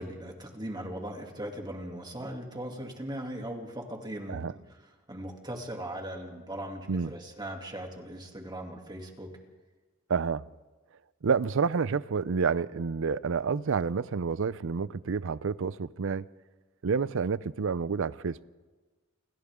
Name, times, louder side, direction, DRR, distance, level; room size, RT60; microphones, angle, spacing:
voice 1, 0.0-4.6 5.1-9.3, right 1 dB, 20° right, 2.6 m, -39 dB
voice 2, 10.1-10.4 11.2-16.3 16.8-18.4, right 5 dB, 65° right, 0.5 m, -29 dB
28.5 x 24.5 x 3.7 m
head